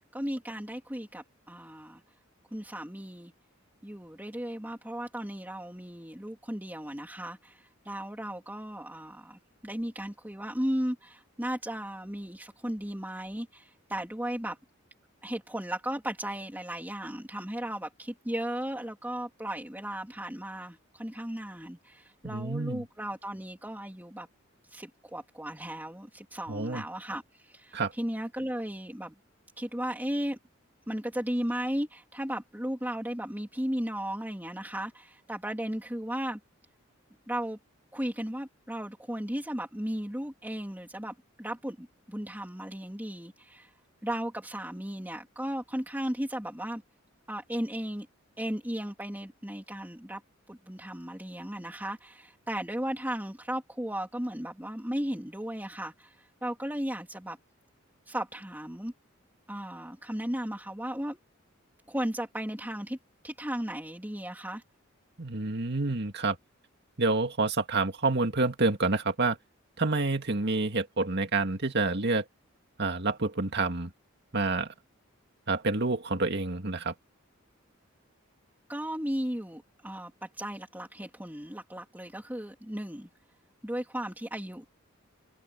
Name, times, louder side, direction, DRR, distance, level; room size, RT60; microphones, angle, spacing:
voice 1, 0.1-2.0 2.5-3.3 3.8-14.6 15.2-24.3 24.6-29.1 29.6-30.4 30.9-36.4 37.3-37.6 37.9-43.7 44.0-46.8 47.3-48.1 48.4-50.2 50.5-57.4 58.1-58.9 59.5-61.2 61.9-63.0 63.2-64.6 78.7-83.1 83.6-84.7, right 1 dB, 10° right, 3.0 m, -35 dB
voice 2, 22.2-22.9 26.5-26.8 27.7-27.9 65.2-66.4 67.0-69.4 69.8-72.2 72.8-73.9 74.3-74.7 75.5-76.9, right 3 dB, 55° right, 2.2 m, -28 dB
head